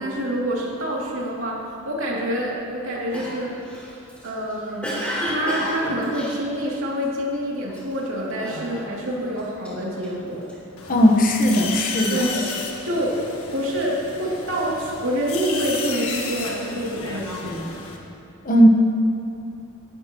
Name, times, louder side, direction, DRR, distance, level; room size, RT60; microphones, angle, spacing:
voice 1, 0.0-3.6 4.2-4.9 5.3-10.5 12.1-12.5 12.8-17.7, equal, 65° right, -4 dB, 2.7 m, -27 dB
Cough, 3.1-7.2 7.7-8.0 8.4-9.1 9.4-10.5 11.1-12.6, equal, 5° left, 3.2 m, -32 dB
sound 1, 10.8-18.0, left 4 dB, 80° left, 1.5 m, -33 dB
voice 2, 10.9-12.3 18.4-18.7, equal, 40° left, 2 dB, 1.2 m, -16 dB
18.0 x 12.5 x 3.0 m, 2.7 s
head